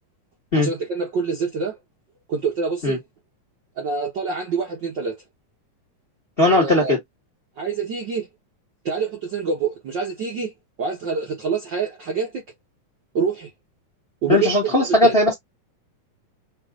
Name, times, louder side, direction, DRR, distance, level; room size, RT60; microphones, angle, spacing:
voice 1, 0.5-1.8 2.3-3.0 3.8-5.2 6.4-6.9 7.6-8.3 8.8-10.5 10.8-12.4 13.1-13.5 14.2-14.7 15.0-15.1, right 5 dB, 75° right, 1.0 m, -26 dB
voice 2, 6.4-7.0 14.3-15.3, left 2 dB, 35° left, 0.9 m, -18 dB
5.3 x 2.9 x 2.4 m
omnidirectional pair, 3.9 m